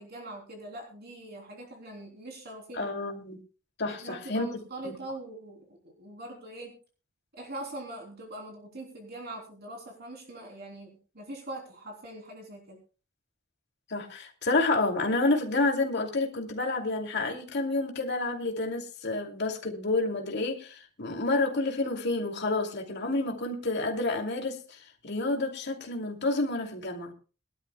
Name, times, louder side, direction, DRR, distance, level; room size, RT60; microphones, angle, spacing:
voice 1, 0.0-2.9 3.8-6.8 7.3-12.8, right 1 dB, 50° right, 1 dB, 3.4 m, -42 dB
voice 2, 2.8-3.4 3.8-4.5 4.8-4.9 13.9-24.8 25.0-27.1, left 2 dB, 55° left, 2 dB, 2.7 m, -29 dB
22.5 x 12.0 x 2.3 m, 0.36 s
head